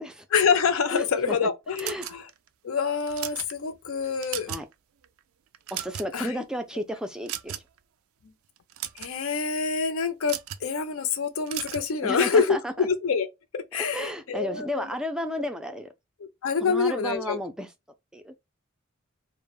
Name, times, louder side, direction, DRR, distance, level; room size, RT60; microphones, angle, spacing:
voice 1, 0.3-2.3 2.6-4.5 6.1-6.4 8.9-13.3 13.5-15.0 16.4-17.4, left 5 dB, 75° left, 0.5 m, -26 dB
voice 2, 0.9-1.5 1.8-2.1 4.5-4.7 5.7-7.5 12.0-12.7 13.8-15.9 16.6-17.7 18.1-18.3, equal, 5° right, 0.3 m, -32 dB
sound 1, 1.8-2.5 3.0-3.5 4.0-4.7 5.0-5.2 5.5-6.3 7.3-7.8 8.6-9.1 10.2-10.7 11.5-11.9, right 11 dB, 80° right, 0.3 m, -35 dB
2.2 x 2.0 x 3.0 m
head